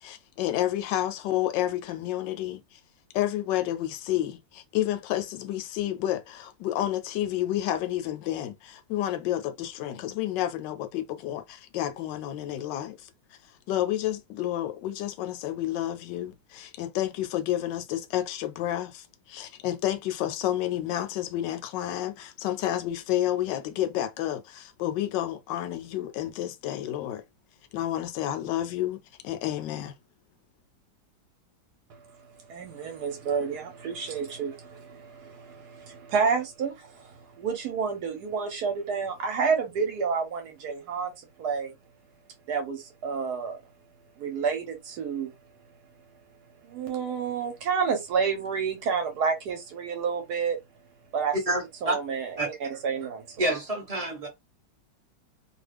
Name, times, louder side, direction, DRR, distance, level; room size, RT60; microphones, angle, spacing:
voice 1, 0.0-2.6 3.1-13.0 13.7-27.2 27.7-29.0 29.2-29.9, left 13 dB, 75° left, 1.2 m, -30 dB
voice 2, 32.5-41.1 41.4-41.7 42.5-43.6 44.2-45.3 46.6-50.6 51.1-51.3 51.8-53.6, right 6 dB, 65° right, 1.2 m, -29 dB
voice 3, 51.5-52.0 52.4-52.5 53.4-54.3, right 1 dB, 25° right, 0.9 m, -28 dB
3.0 x 2.2 x 3.3 m
omnidirectional pair, 2.0 m